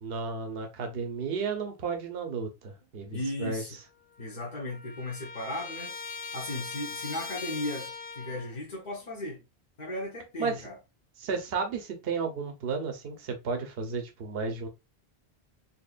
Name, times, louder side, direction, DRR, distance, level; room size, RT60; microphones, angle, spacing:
voice 1, 0.0-3.6 10.4-10.6 11.2-14.7, right 5 dB, 65° right, 1.0 m, -33 dB
voice 2, 3.1-3.8 4.2-5.9 6.3-9.4 9.8-10.7, left 1 dB, 45° left, 1.2 m, -36 dB
Trumpet, 3.8-3.9 4.1-8.5, left 4 dB, 60° left, 0.9 m, -40 dB
4.3 x 2.9 x 2.4 m
omnidirectional pair, 1.1 m